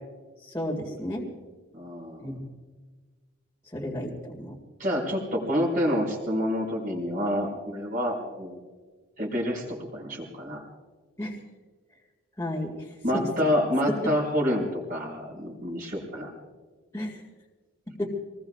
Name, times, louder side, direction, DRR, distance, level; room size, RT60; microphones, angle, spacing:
voice 1, 0.4-1.3 2.2-2.4 3.7-4.5 11.2-11.3 12.4-13.5 13.9-14.1 16.9-17.2 18.0-18.1, left 1 dB, 15° left, -4 dB, 2.1 m, -32 dB
voice 2, 1.7-2.3 4.8-8.6 9.2-10.6 13.0-16.3, equal, 40° right, -3 dB, 4.5 m, -28 dB
26.5 x 20.0 x 2.4 m, 1.4 s
head